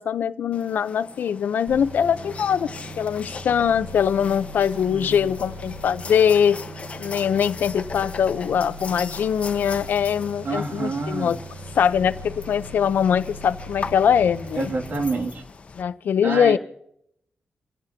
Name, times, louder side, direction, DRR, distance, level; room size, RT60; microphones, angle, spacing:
voice 1, 0.0-2.7 3.0-6.6 7.0-11.4 11.8-14.7 15.8-16.6, left 8 dB, 85° left, 0.7 m, -22 dB
sound 1, 0.5-15.8, left 5 dB, 40° left, 1.0 m, -40 dB
sound 2, 1.7-15.2, equal, 75° right, 5.9 m, -39 dB
voice 2, 4.9-5.3 10.4-11.4 14.6-15.4 16.2-16.6, right 2 dB, 60° right, 2.6 m, -28 dB
27.5 x 16.0 x 2.8 m
wide cardioid pair, 135°, 3 cm